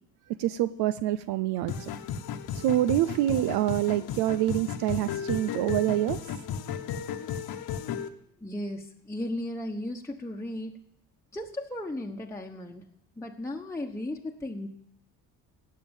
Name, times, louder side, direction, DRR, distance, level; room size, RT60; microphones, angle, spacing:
voice 1, 0.4-1.9 2.5-6.2, right 13 dB, 85° right, 13 dB, 0.7 m, -26 dB
sound 1, 1.7-8.1, left 8 dB, 70° left, 1.3 m, -35 dB
voice 2, 8.4-10.8 11.3-12.9 13.2-14.7, left 1 dB, 5° left, 0 dB, 1.1 m, -35 dB
17.5 x 6.5 x 9.0 m, 0.70 s
cardioid pair, 100°, 38 cm